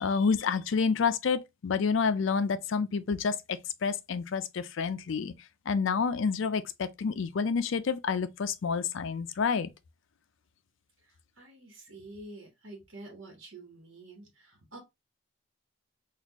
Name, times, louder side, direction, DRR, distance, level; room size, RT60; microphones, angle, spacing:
voice 1, 0.0-5.3 5.7-9.7, left 5 dB, 65° left, 0.4 m, -29 dB
voice 2, 11.0-14.8, right 2 dB, 60° right, 1.2 m, -48 dB
4.2 x 2.4 x 2.9 m
head